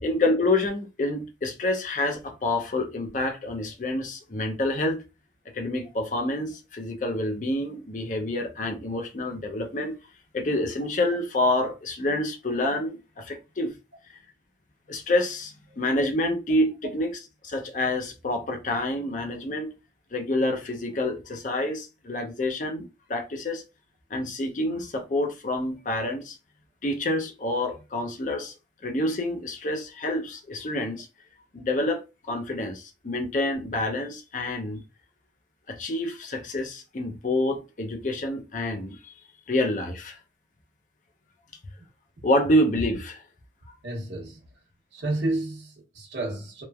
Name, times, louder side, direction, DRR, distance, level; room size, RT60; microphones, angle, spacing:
voice 1, 0.0-5.0 5.5-10.0 10.3-13.7 14.1-14.2 14.9-19.7 20.1-23.6 24.1-26.4 26.8-28.5 28.8-31.1 31.5-34.8 35.7-39.1 39.5-40.2 42.2-43.2, left 1 dB, 45° left, 0.5 m, -27 dB
voice 2, 43.8-44.4 44.9-46.6, right 2 dB, 75° right, 0.8 m, -31 dB
3.0 x 2.1 x 2.3 m
head